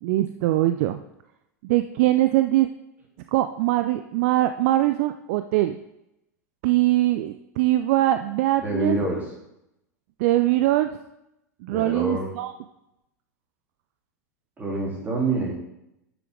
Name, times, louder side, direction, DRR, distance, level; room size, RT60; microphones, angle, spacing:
voice 1, 0.0-1.0 1.6-2.7 3.3-5.8 6.6-9.0 10.2-10.9 11.6-12.5, right 15 dB, 50° right, 10 dB, 0.5 m, -22 dB
voice 2, 8.6-9.3 11.7-12.3 14.6-15.5, right 2 dB, 20° right, -3 dB, 3.5 m, -26 dB
11.5 x 7.1 x 3.8 m, 0.87 s
figure-of-eight pair, 85°, 9 cm